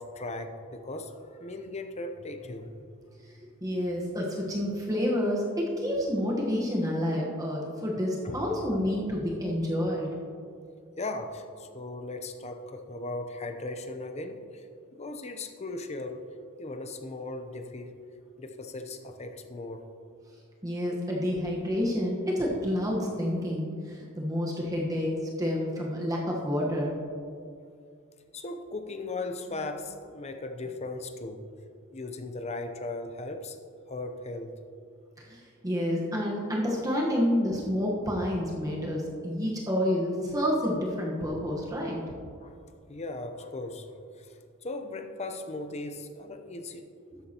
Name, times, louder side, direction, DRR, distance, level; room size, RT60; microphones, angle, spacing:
voice 1, 0.0-2.9 8.2-8.4 11.0-16.3 16.6-18.0 18.4-19.9 28.3-31.5 31.9-33.6 33.9-34.6 42.4-42.6 42.9-46.9, left 2 dB, 30° left, 7 dB, 0.7 m, -38 dB
voice 2, 3.6-10.1 20.6-26.9 35.2-42.0 47.1-47.2, equal, 15° right, -3 dB, 1.2 m, -29 dB
13.0 x 9.4 x 2.9 m, 2.3 s
head